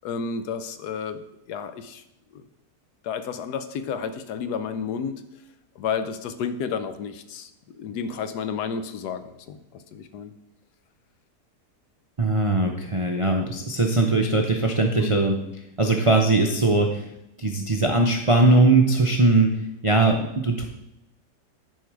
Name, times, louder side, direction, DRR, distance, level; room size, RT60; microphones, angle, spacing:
voice 1, 0.0-1.2 1.5-2.0 2.3-2.4 3.0-5.2 5.8-7.5 7.7-10.3 15.0-15.2, left 6 dB, 80° left, 10 dB, 1.3 m, -31 dB
voice 2, 12.2-15.3 15.8-17.0 17.4-19.5 19.8-20.6, right 2 dB, 50° right, 2 dB, 0.3 m, -20 dB
10.5 x 4.7 x 4.7 m, 0.85 s
omnidirectional pair, 1.7 m